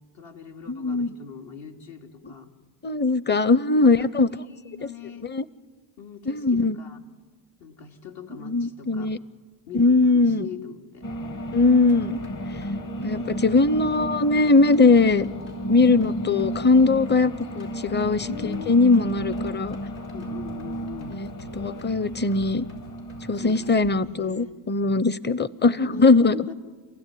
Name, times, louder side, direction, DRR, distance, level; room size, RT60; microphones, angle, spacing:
voice 1, 0.1-2.5 3.8-5.3 6.0-7.0 7.6-9.1 9.7-11.1 13.2-13.5 18.2-18.7 20.1-21.2 23.4-24.6 25.7-26.5, left 7 dB, 60° left, 2 dB, 3.2 m, -41 dB
voice 2, 0.7-1.1 2.8-4.3 4.8-4.9 5.3-5.4 6.3-6.8 8.4-9.2 9.7-10.5 11.5-12.2 13.0-15.3 15.7-18.3 18.7-19.8 21.1-21.3 21.5-22.6 23.3-26.4, left 3 dB, 20° left, 18 dB, 0.9 m, -20 dB
sound 1, 11.0-23.8, right 1 dB, 40° left, 1.8 m, -33 dB
sound 2, 11.9-23.9, right 1 dB, 85° left, 6.2 m, -47 dB
28.5 x 16.0 x 9.4 m, 1.4 s
cardioid pair, 75°, 49 cm